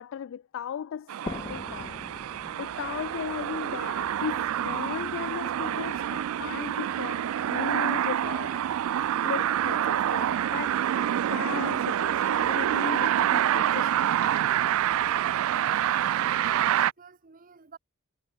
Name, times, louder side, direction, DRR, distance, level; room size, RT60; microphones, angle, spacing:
voice 1, 0.0-2.0 2.6-8.6 8.9-14.1, left 8 dB, 60° left, 0.3 m, -37 dB
sound 1, 1.1-16.9, right 10 dB, 70° right, 0.3 m, -27 dB
sound 2, 1.3-4.8, left 1 dB, 20° left, 0.8 m, -43 dB
sound 3, 2.6-16.7, right 1 dB, 15° right, 7.7 m, -55 dB
voice 2, 16.2-17.8, right 6 dB, 40° right, 0.9 m, -47 dB
head